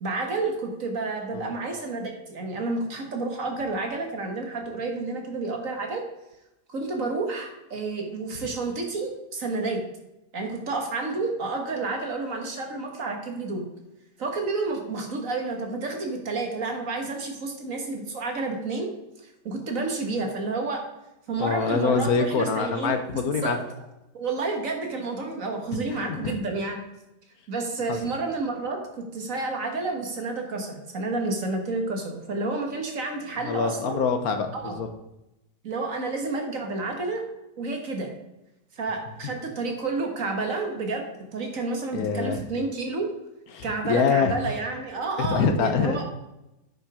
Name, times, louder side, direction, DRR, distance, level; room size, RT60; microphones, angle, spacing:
voice 1, 0.0-6.0 6.7-9.8 10.3-13.7 14.2-18.9 19.5-20.8 21.3-23.6 24.1-26.8 27.5-34.0 34.5-34.8 35.6-37.2 37.6-38.1 38.8-41.0 41.3-43.1 43.6-46.0, right 3 dB, 55° right, 3 dB, 1.9 m, -30 dB
voice 2, 21.4-23.6 25.7-26.3 27.9-28.0 33.5-34.9 41.9-42.4 43.5-44.3 45.2-46.0, left 5 dB, 65° left, 7 dB, 1.3 m, -25 dB
9.3 x 5.8 x 4.8 m, 0.93 s
omnidirectional pair, 1.8 m